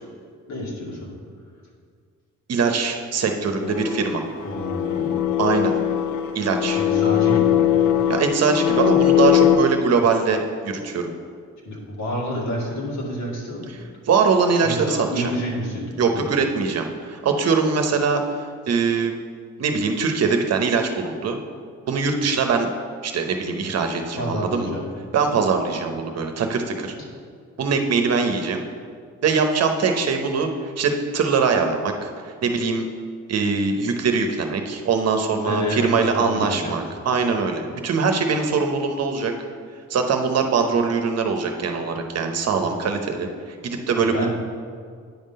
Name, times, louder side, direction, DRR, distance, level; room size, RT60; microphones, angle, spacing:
voice 1, 0.5-1.2 4.4-5.1 6.8-7.7 11.7-13.7 14.6-15.9 16.1-16.3 24.2-24.9 25.8-25.9 35.4-36.8 42.6-42.9 44.0-44.3, equal, 65° left, -3 dB, 2.1 m, -29 dB
voice 2, 2.5-4.2 5.4-5.7 6.3-6.8 8.1-11.1 14.1-15.2 16.0-19.1 19.6-21.4 21.9-22.7 23.0-24.7 25.1-26.9 27.6-28.6 29.2-32.9 33.3-39.3 39.9-44.3, right 5 dB, 55° right, 4 dB, 0.9 m, -22 dB
sound 1, 3.6-9.5, left 11 dB, 90° left, 0.5 m, -20 dB
9.3 x 3.7 x 5.4 m, 2.1 s
cardioid pair, 90°, 30 cm